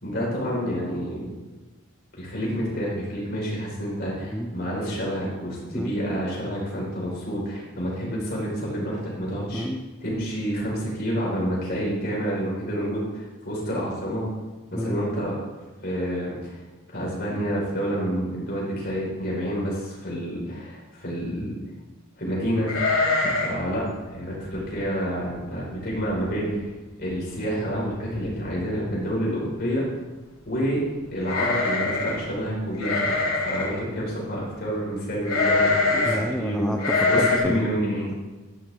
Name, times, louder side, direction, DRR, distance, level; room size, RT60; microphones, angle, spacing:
voice 1, 0.0-1.3 2.2-9.6 10.0-14.3 14.7-15.4 15.8-16.5 16.9-21.6 22.2-22.7 23.4-26.6 27.0-29.8 30.4-30.8 31.1-36.7 37.1-38.1, equal, 45° left, -4 dB, 4.8 m, -28 dB
sheep sound, 22.7-23.6 23.9-24.0 24.5-24.7 25.3-25.4 25.7-26.2 26.5-26.6 27.7-27.8 28.1-28.6 31.2-32.2 32.8-33.8 35.3-36.2 36.8-37.4, left 3 dB, 75° left, 2.9 m, -23 dB
voice 2, 36.0-37.6, equal, 5° left, 2 dB, 0.6 m, -29 dB
13.5 x 11.0 x 3.7 m, 1.2 s
head